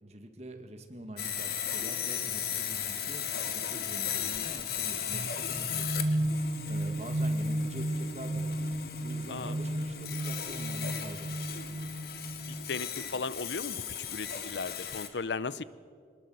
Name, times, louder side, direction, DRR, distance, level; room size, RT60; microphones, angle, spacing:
voice 1, 0.0-6.1 6.4-11.5, right 1 dB, 35° right, 6 dB, 1.9 m, -45 dB
Sawing, 1.2-15.1, left 9 dB, 60° left, 1.6 m, -37 dB
sound 1, 5.1-12.9, right 1 dB, 60° right, 1.1 m, -34 dB
voice 2, 12.5-15.6, left 4 dB, 80° left, 17 dB, 0.7 m, -36 dB
23.0 x 20.0 x 7.9 m, 2.1 s
head